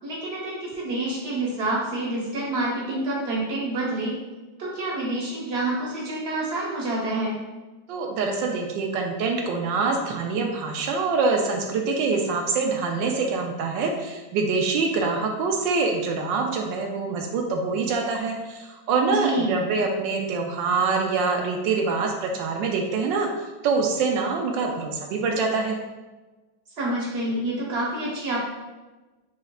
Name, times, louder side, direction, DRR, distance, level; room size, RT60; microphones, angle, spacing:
voice 1, 0.0-4.1 4.6-7.3 19.0-19.5 26.8-28.4, right 2 dB, 40° right, -5 dB, 1.1 m, -27 dB
voice 2, 7.9-23.3 23.6-25.8, right 4 dB, 75° right, 2 dB, 1.2 m, -25 dB
5.6 x 3.0 x 2.3 m, 1.2 s
omnidirectional pair, 2.1 m